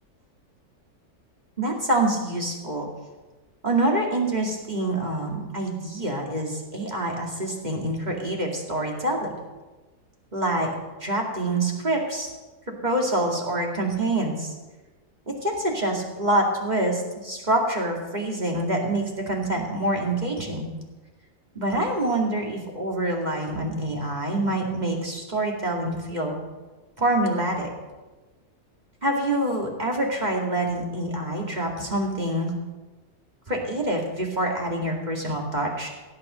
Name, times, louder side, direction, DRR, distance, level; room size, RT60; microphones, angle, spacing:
voice 1, 1.6-2.9 3.6-9.3 10.3-10.7 11.0-12.3 12.7-14.5 15.3-20.7 21.5-26.4 27.0-27.7 29.0-32.5 33.5-35.9, right 1 dB, 30° right, 0 dB, 2.5 m, -26 dB
16.5 x 8.8 x 6.8 m, 1.2 s
omnidirectional pair, 1.6 m